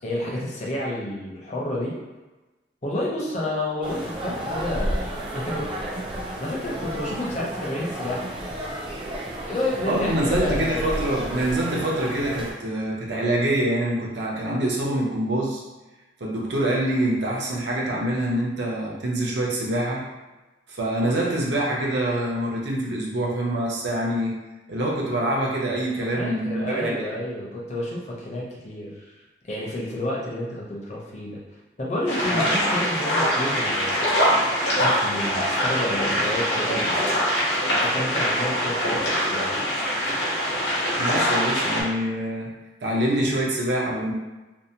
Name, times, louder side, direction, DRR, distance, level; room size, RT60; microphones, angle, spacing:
voice 1, 0.0-1.9 2.8-5.7 6.4-8.3 9.5-10.8 26.0-29.2 29.4-31.4 31.8-34.0 34.7-37.0 37.7-39.6, left 1 dB, 40° left, -4 dB, 0.5 m, -30 dB
sound 1, 3.8-12.5, equal, 30° right, 0.3 m, -32 dB
voice 2, 9.8-15.6 16.2-20.0 20.7-24.3 24.7-27.0 32.3-32.5 41.0-42.5 42.8-44.1, right 1 dB, 75° right, -3 dB, 0.6 m, -25 dB
sound 2, 32.1-41.8, equal, 90° left, 0.9 m, -23 dB
2.6 x 2.0 x 2.7 m, 1.1 s
head